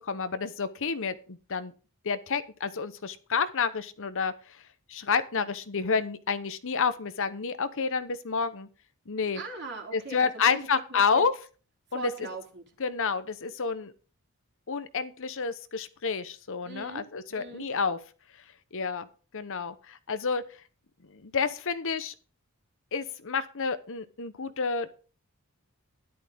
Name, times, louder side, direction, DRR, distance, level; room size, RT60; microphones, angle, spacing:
voice 1, 0.1-1.7 2.0-4.3 4.9-8.7 9.1-9.4 9.9-11.3 11.9-12.1 12.8-13.9 14.7-18.0 18.7-19.1 19.3-20.4 21.1-22.1 22.9-24.9, left 5 dB, 60° left, 12 dB, 0.9 m, -29 dB
voice 2, 9.3-10.6 10.9-11.2 11.9-12.6 16.6-17.0 17.3-17.6, right 2 dB, 50° right, 1 dB, 3.1 m, -40 dB
12.5 x 11.0 x 3.5 m, 0.37 s
head